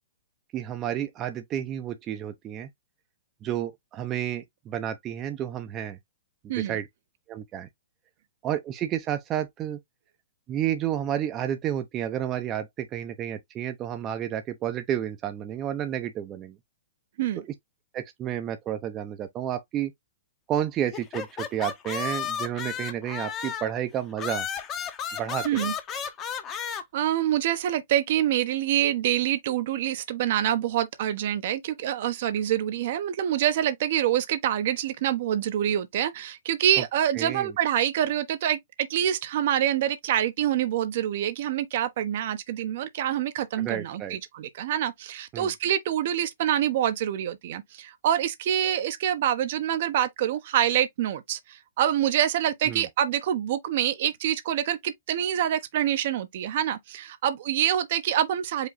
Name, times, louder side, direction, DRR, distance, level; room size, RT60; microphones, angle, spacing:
voice 1, 0.5-2.7 3.4-6.0 6.5-6.9 7.3-7.7 8.4-9.8 10.5-16.6 17.9-19.9 20.5-24.5 25.1-25.5 37.2-37.5 43.6-44.2 45.3-45.5 52.7-52.9, right 10 dB, 30° right, 0.7 m, -31 dB
sound 1, 20.9-23.8 24.2-26.8, left 7 dB, 25° left, 1.0 m, -33 dB
voice 2, 26.9-58.7, right 11 dB, 60° right, 0.8 m, -26 dB
5.0 x 2.2 x 3.9 m
hypercardioid pair, 130°, 0 cm